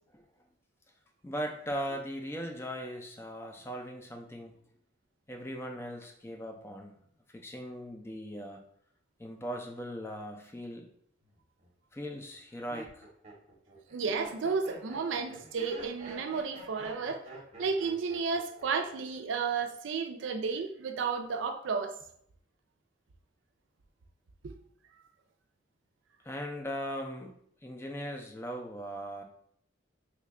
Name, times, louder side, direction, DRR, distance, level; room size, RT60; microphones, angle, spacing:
voice 1, 1.2-4.5 5.3-7.0 7.3-8.6 9.2-10.9 11.9-13.1 26.2-27.3 27.6-29.2, equal, 15° left, 0.3 m, -39 dB
Laughter, 11.3-11.7 12.3-18.9 19.2-19.7, right 2 dB, 35° right, 0.8 m, -48 dB
voice 2, 13.9-17.2 17.6-21.9 24.4-24.5, right 5 dB, 80° right, 0.4 m, -32 dB
3.1 x 2.2 x 3.6 m
head